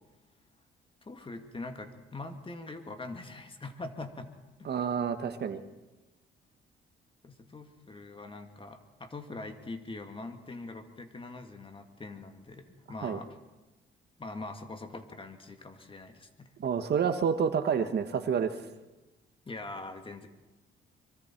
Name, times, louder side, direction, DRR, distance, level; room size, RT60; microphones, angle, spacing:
voice 1, 1.0-4.3 4.6-4.7 7.2-13.3 14.2-16.5 19.5-20.3, left 2 dB, 25° left, 6 dB, 2.5 m, -43 dB
voice 2, 4.6-5.6 13.0-13.2 16.6-18.6, right 7 dB, 55° right, 8 dB, 1.5 m, -29 dB
25.0 x 23.5 x 4.6 m, 1.1 s
cardioid pair, 90°, 20 cm